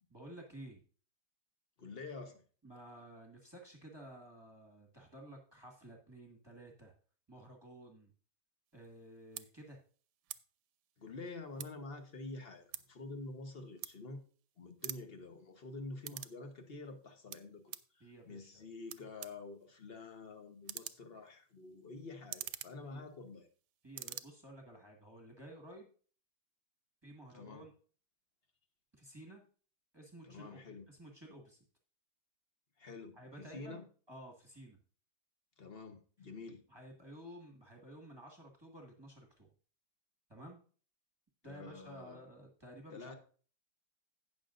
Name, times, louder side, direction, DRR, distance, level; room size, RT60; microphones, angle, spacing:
voice 1, 0.1-0.8 2.6-6.9 7.3-8.1 8.7-9.8 18.0-18.6 22.8-23.0 23.8-25.9 27.0-27.7 28.9-29.4 29.9-30.6 30.9-31.6 33.1-34.8 36.7-39.5 40.3-40.6 41.4-43.1, right 1 dB, 15° right, 0 dB, 1.6 m, -53 dB
voice 2, 1.8-2.4 11.0-14.2 14.6-23.5 27.3-27.7 30.2-30.9 32.8-33.8 35.6-36.6 41.5-42.2 42.9-43.1, left 3 dB, 40° left, 6 dB, 1.2 m, -48 dB
sound 1, 8.8-9.0 9.3-9.5 10.2-10.4 10.8-11.9 12.3-14.4 14.7-16.4 16.7-17.9 18.6-18.7 18.9-23.6 23.8-24.2, right 13 dB, 80° right, 1.1 m, -47 dB
17.5 x 6.3 x 2.6 m, 0.42 s
omnidirectional pair, 1.8 m